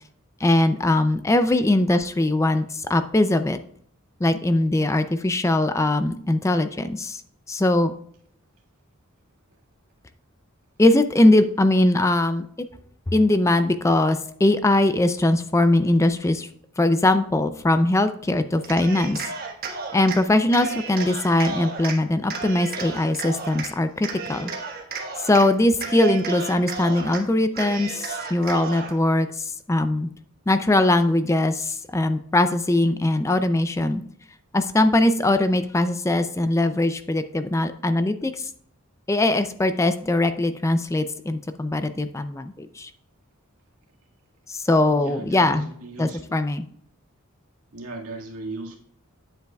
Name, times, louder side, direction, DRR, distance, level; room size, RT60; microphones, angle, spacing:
voice 1, 0.4-3.6 4.2-7.2 7.5-7.9 10.8-12.5 13.1-16.5 16.8-19.2 19.9-24.5 25.2-30.1 30.5-34.0 34.5-38.5 39.1-42.9 44.5-45.7 46.0-46.6, left 1 dB, 15° left, 10 dB, 0.4 m, -21 dB
Cheering, 18.6-20.2 20.5-22.0 22.3-23.7 24.0-25.5 25.7-27.2 27.5-29.0, right 5 dB, 45° right, 1.3 m, -33 dB
voice 2, 44.9-46.2 47.7-48.8, right 2 dB, 90° right, 0 dB, 1.9 m, -37 dB
9.2 x 7.9 x 2.3 m, 0.64 s
head